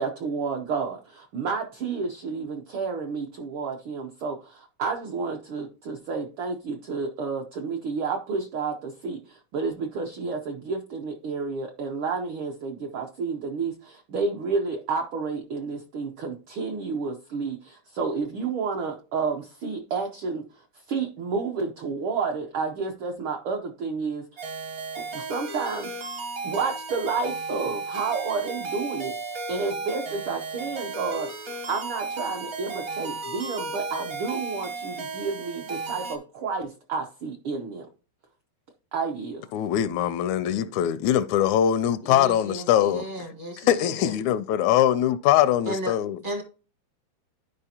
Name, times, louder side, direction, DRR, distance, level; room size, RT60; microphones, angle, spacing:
voice 1, 0.0-20.4 20.9-24.4 25.0-25.9 26.4-37.9 38.9-39.5, right 4 dB, 75° right, 1.2 m, -30 dB
sound 1, 24.4-36.2, right 3 dB, 55° right, 0.9 m, -34 dB
voice 2, 39.5-43.1 43.6-46.2, left 11 dB, 85° left, 1.9 m, -22 dB
voice 3, 42.0-44.1 45.7-46.0 46.2-46.4, equal, 35° right, 0.6 m, -34 dB
11.5 x 5.0 x 2.8 m
omnidirectional pair, 3.3 m